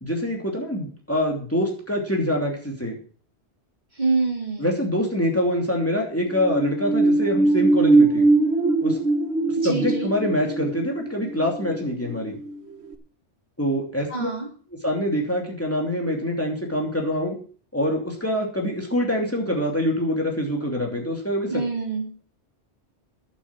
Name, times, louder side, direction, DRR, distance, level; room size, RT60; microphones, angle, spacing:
voice 1, 0.0-3.0 4.6-8.3 8.8-9.0 9.6-12.4 13.6-14.3 14.8-17.4 17.7-21.6, equal, 10° left, 0 dB, 2.8 m, -25 dB
voice 2, 4.0-4.7 9.6-10.1 14.1-14.5 21.5-22.1, right 3 dB, 40° right, -2 dB, 3.7 m, -26 dB
sound 1, 6.2-12.6 12.9-13.0, right 2 dB, 70° right, 1.5 m, -21 dB
11.5 x 7.8 x 7.6 m, 0.43 s
omnidirectional pair, 1.2 m